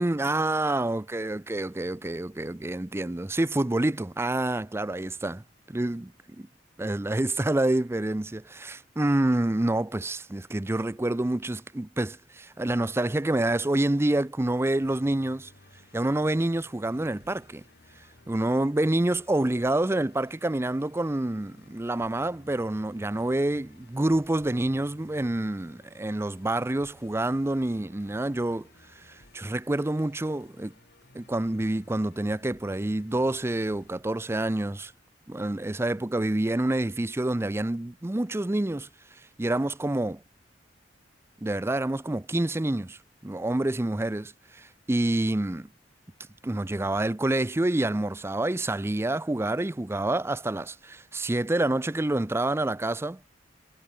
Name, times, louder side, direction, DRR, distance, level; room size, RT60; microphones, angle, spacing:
voice 1, 0.0-6.1 6.4-6.5 6.8-15.5 15.9-17.6 18.3-28.7 29.0-30.7 31.1-34.9 35.3-38.9 39.4-40.2 41.4-45.7 46.4-53.2, right 1 dB, 15° right, 0.5 m, -27 dB
Musical instrument, 14.8-34.0, left 2 dB, 60° left, 2.1 m, -57 dB
head